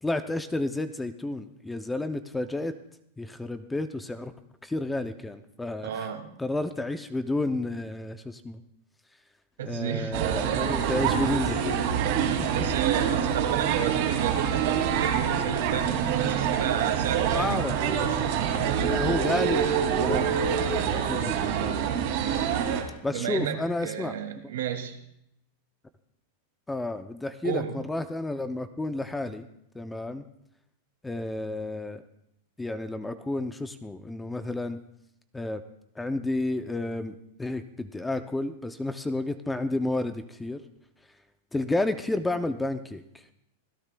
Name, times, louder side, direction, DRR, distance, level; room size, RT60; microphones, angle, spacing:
voice 1, 0.0-2.7 3.2-4.3 4.6-5.9 6.4-8.6 9.6-11.7 12.4-12.7 17.3-17.7 18.8-21.9 23.0-24.1 26.7-29.5 29.7-30.2 31.0-32.0 32.6-34.8 35.3-35.6 36.0-40.6 41.5-43.0, left 2 dB, 5° left, 10 dB, 0.5 m, -31 dB
voice 2, 5.8-6.4 9.6-10.2 12.5-17.6 21.2-21.8 23.1-25.0 27.4-27.8, right 9 dB, 90° right, 4 dB, 2.3 m, -32 dB
sound 1, 10.1-22.8, right 8 dB, 45° right, 2.4 m, -26 dB
26.0 x 16.5 x 2.2 m, 0.77 s
supercardioid pair, 180°, 0 cm